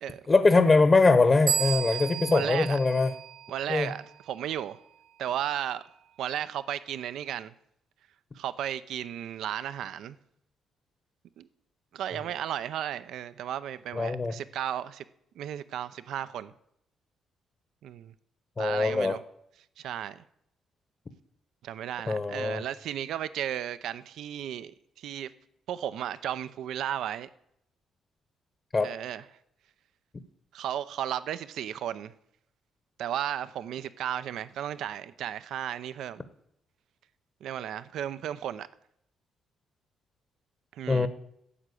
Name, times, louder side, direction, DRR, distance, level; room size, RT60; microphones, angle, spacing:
voice 1, 0.3-3.1 3.7-3.9 13.9-14.3 18.6-19.2 22.1-22.6 28.7-28.9 40.9-41.1, left 3 dB, 30° left, 1.0 m, -22 dB
sound 1, 1.5-3.9, right 8 dB, 55° right, 1.0 m, -33 dB
voice 2, 2.3-2.8 3.5-4.8 5.2-5.8 6.2-7.5 8.3-10.2 11.4-11.5 11.9-15.0 15.4-16.5 17.8-18.1 18.6-19.2 19.8-20.2 21.6-25.3 25.7-27.3 28.8-29.2 30.5-32.1 33.0-36.2 37.4-38.7 40.7-41.1, right 10 dB, 75° right, 0.6 m, -34 dB
11.0 x 7.7 x 8.3 m
cardioid pair, 90°, 0 cm